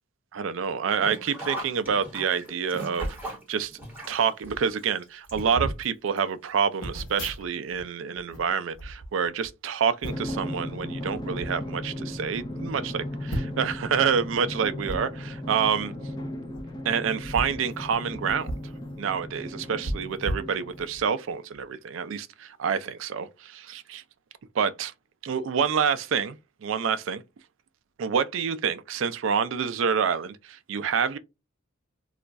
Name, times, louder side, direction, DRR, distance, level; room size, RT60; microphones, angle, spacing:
voice 1, 0.3-3.8 4.1-15.9 16.9-18.5 19.0-24.0 24.5-24.9 25.2-26.4 26.6-27.2 28.0-31.2, right 6 dB, 75° right, 0.4 m, -27 dB
Sink (filling or washing), 0.9-5.8 6.2-6.3 7.3-7.4 7.7-7.8, right 1 dB, 10° right, 1.0 m, -39 dB
sound 1, 3.0-3.3 4.1-4.2 4.4-4.7 5.3-5.8 6.8-7.8 8.1-9.5 10.0-10.4 11.1-11.5 12.1-12.2 12.4-12.5 13.3-13.8 14.8-15.0 16.4-16.6 17.2-18.7 19.0-19.1 19.8-21.0 21.5-21.7, right 1 dB, 80° left, 1.0 m, -35 dB
Drum, 10.0-21.1, left 1 dB, 20° left, 0.5 m, -36 dB
2.4 x 2.2 x 3.9 m
head